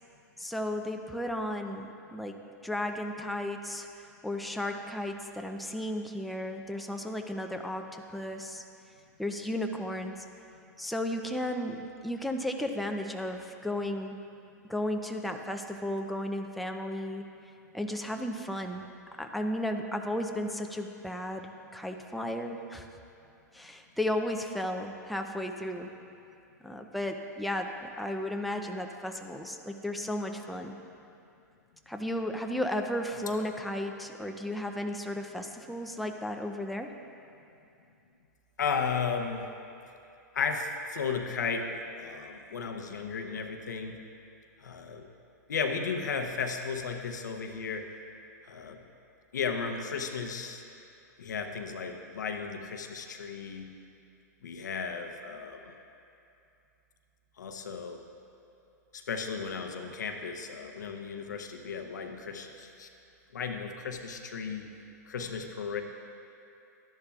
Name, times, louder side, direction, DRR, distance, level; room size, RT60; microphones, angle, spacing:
voice 1, 0.4-2.4 2.6-8.6 9.2-10.2 10.8-14.2 14.7-17.2 17.7-18.9 19.2-22.9 23.5-25.9 26.6-30.8 31.9-36.9, left 1 dB, ahead, 3 dB, 0.5 m, -34 dB
voice 2, 38.6-39.5 40.3-44.0 44.6-45.1 45.5-47.9 48.4-48.8 49.3-50.6 51.2-53.7 54.4-55.7 57.4-58.0 58.9-62.9 63.3-64.6 65.1-65.8, left 5 dB, 85° left, 4 dB, 0.8 m, -34 dB
12.0 x 10.5 x 2.4 m, 2.6 s
hypercardioid pair, 110°, 9 cm